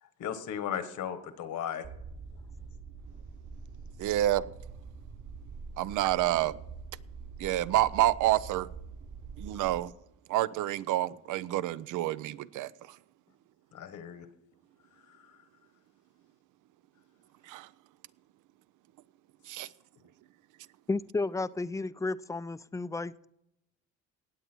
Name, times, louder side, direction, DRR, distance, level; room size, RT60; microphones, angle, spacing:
voice 1, 0.0-1.9 2.6-2.7 13.7-14.3 14.9-15.4 19.5-19.7, left 9 dB, 75° left, 1.4 m, -37 dB
sound 1, 1.8-9.8, right 5 dB, 60° right, 4.1 m, -45 dB
voice 2, 4.0-4.5 5.8-6.6 7.4-8.7 9.4-9.9 10.3-13.0 17.4-17.7 19.4-19.7, right 14 dB, 85° right, 0.6 m, -28 dB
voice 3, 20.9-23.3, left 3 dB, 10° left, 0.4 m, -33 dB
18.0 x 8.1 x 4.5 m
cardioid pair, 90°, 30 cm